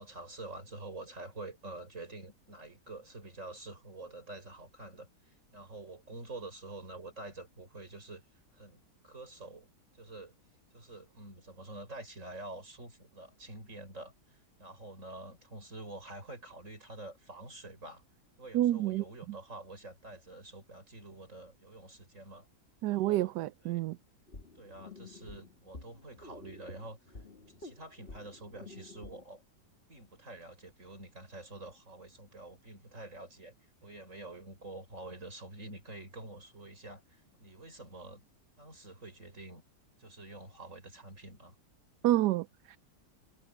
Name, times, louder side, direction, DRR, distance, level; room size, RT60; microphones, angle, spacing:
voice 1, 0.0-8.2 8.5-9.7 9.9-10.3 10.7-18.0 18.4-22.5 22.8-23.3 23.7-23.8 24.5-27.2 27.6-29.4 29.9-33.5 33.8-38.2 38.6-39.6 40.0-41.5, right 2 dB, 45° right, 7.2 m, -47 dB
voice 2, 18.5-19.4 22.8-24.0 42.0-42.8, right 14 dB, 80° right, 1.2 m, -29 dB
sound 1, 24.3-29.2, left 3 dB, 35° left, 2.1 m, -50 dB
omnidirectional pair, 1.8 m